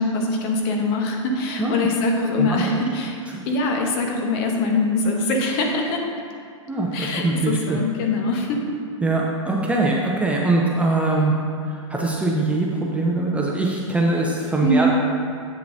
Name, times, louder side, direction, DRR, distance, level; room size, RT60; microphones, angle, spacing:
voice 1, 0.0-3.2 3.5-6.0 6.9-8.6 14.6-14.9, left 2 dB, 45° left, 1 dB, 1.1 m, -23 dB
voice 2, 2.4-2.8 6.7-7.8 9.0-11.3 11.7-14.9, right 2 dB, 5° right, -2 dB, 0.6 m, -22 dB
7.7 x 6.7 x 2.7 m, 2.3 s
hypercardioid pair, 120°, 17 cm